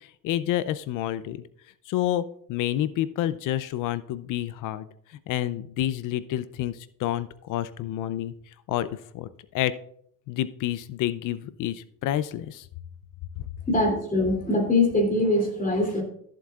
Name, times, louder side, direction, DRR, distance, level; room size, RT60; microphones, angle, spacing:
voice 1, 0.2-1.4 1.9-2.2 2.5-4.9 5.3-8.3 8.7-9.3 9.5-9.7 10.3-12.7, left 12 dB, 65° left, 15 dB, 0.6 m, -28 dB
voice 2, 13.7-16.0, left 2 dB, 25° left, 2 dB, 2.9 m, -23 dB
14.0 x 7.6 x 2.4 m, 0.67 s
cardioid pair, 100°, 34 cm